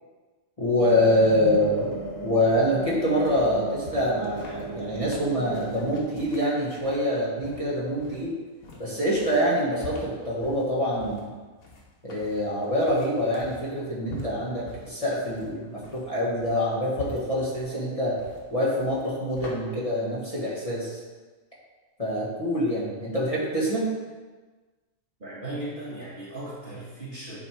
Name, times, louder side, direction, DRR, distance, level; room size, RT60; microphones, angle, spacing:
voice 1, 0.6-1.9 2.2-8.3 8.8-11.3 12.0-18.1 18.5-21.0 22.0-23.9, equal, 25° left, -7 dB, 1.5 m, -25 dB
sound 1, 0.8-6.0, right 3 dB, 20° right, 0.5 m, -35 dB
sound 2, 2.8-19.5, left 3 dB, 85° left, 1.6 m, -45 dB
voice 2, 25.2-27.4, right 1 dB, 40° right, -6 dB, 1.3 m, -37 dB
8.2 x 3.6 x 4.5 m, 1.3 s
omnidirectional pair, 1.5 m